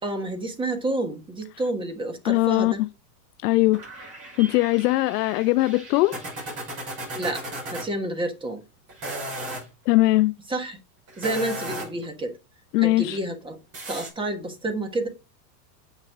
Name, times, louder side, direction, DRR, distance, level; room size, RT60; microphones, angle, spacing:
voice 1, 0.0-2.8 7.1-7.4 7.7-8.6 10.5-10.8 11.2-12.3 12.8-13.6 13.9-15.1, right 1 dB, 10° right, 1.4 m, -29 dB
voice 2, 2.2-2.9 3.4-4.1 4.4-6.2 9.9-10.3 12.7-13.2, left 19 dB, 70° left, 0.5 m, -21 dB
sound 1, 3.7-7.9 8.9-9.7 11.1-12.1 13.7-14.1, right 1 dB, 30° right, 4.8 m, -36 dB
8.3 x 6.2 x 3.6 m
supercardioid pair, 145°, 50 cm